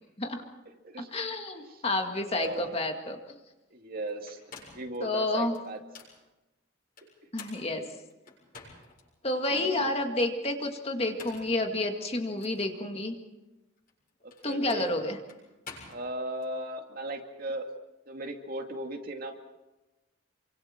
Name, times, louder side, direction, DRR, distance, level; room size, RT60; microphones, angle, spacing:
voice 1, 1.1-3.2 5.0-5.5 7.3-7.8 9.2-13.2 14.4-15.2, left 2 dB, 30° left, 4 dB, 2.1 m, -30 dB
sound 1, 2.0-2.1 2.4-2.7 4.1-5.0 5.5-6.2 7.0-9.0 9.5-9.6 10.9-11.6 12.4-12.6 13.8-16.5, left 4 dB, 45° left, 7.6 m, -49 dB
voice 2, 2.3-2.7 3.7-4.4 4.7-5.8 9.3-9.9 14.2-14.9 15.9-17.7 18.1-19.3, right 1 dB, 45° right, 4 dB, 2.3 m, -37 dB
28.5 x 25.0 x 4.5 m, 1.0 s
head